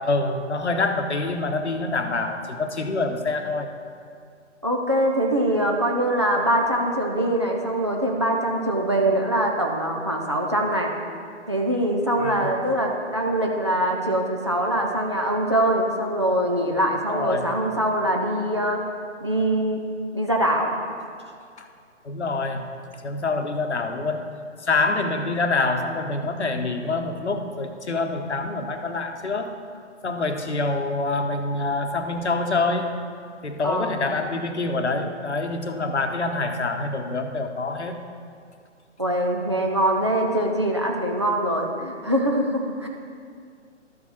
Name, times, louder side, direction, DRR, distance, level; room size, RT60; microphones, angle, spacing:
voice 1, 0.0-3.7 12.2-12.5 17.1-17.5 21.6-21.7 22.0-22.6 23.0-24.2 24.6-29.5 30.0-32.9 33.4-37.9, left 3 dB, 65° left, 6 dB, 1.0 m, -26 dB
voice 2, 4.6-10.9 11.5-18.8 19.2-19.8 20.1-20.8 33.6-33.9 39.0-42.9, right 1 dB, 25° right, -1 dB, 0.4 m, -23 dB
12.5 x 5.1 x 4.2 m, 2.2 s
figure-of-eight pair, 140°, 36 cm